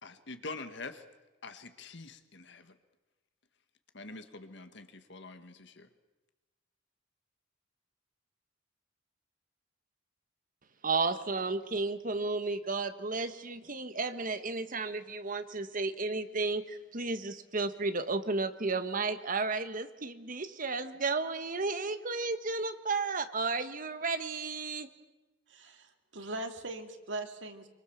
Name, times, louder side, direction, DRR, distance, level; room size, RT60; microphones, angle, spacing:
voice 1, 0.0-1.0 1.4-2.8 3.9-5.9, left 3 dB, 65° left, 9 dB, 1.8 m, -45 dB
voice 2, 10.8-24.9, right 3 dB, 45° right, 10 dB, 1.5 m, -33 dB
voice 3, 25.5-27.7, right 2 dB, 70° right, 6 dB, 2.5 m, -40 dB
25.0 x 24.5 x 7.3 m, 1.1 s
head